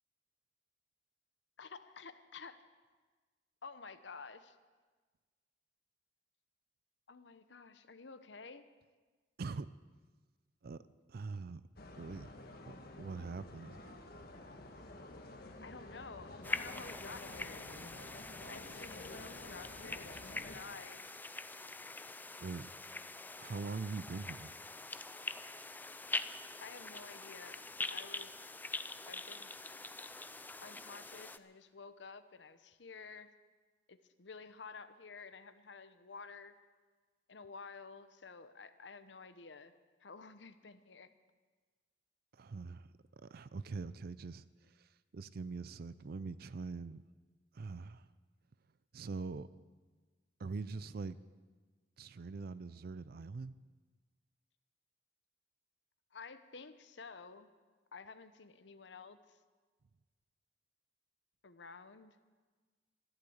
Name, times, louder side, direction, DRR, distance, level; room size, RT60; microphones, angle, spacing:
voice 1, 1.6-2.6 3.6-4.5 7.1-8.7 15.6-17.6 18.5-21.0 26.6-27.6 27.9-28.5 29.1-29.5 30.6-33.3 33.9-36.6 37.3-39.7 40.0-41.1 56.1-57.5 57.9-59.4 61.4-62.2, left 4 dB, 75° left, 12 dB, 0.9 m, -51 dB
voice 2, 11.1-11.6 12.0-12.3 12.7-13.9 22.4-22.7 23.4-24.5 42.3-44.5 44.8-47.0 47.5-48.1 48.9-49.5 50.4-51.2 52.0-53.5, right 4 dB, 55° right, 16 dB, 0.4 m, -43 dB
sound 1, 11.8-20.6, left 2 dB, 55° left, 1.6 m, -51 dB
sound 2, 16.4-31.4, left 3 dB, 10° left, 0.4 m, -44 dB
14.0 x 11.5 x 8.0 m, 1.4 s
head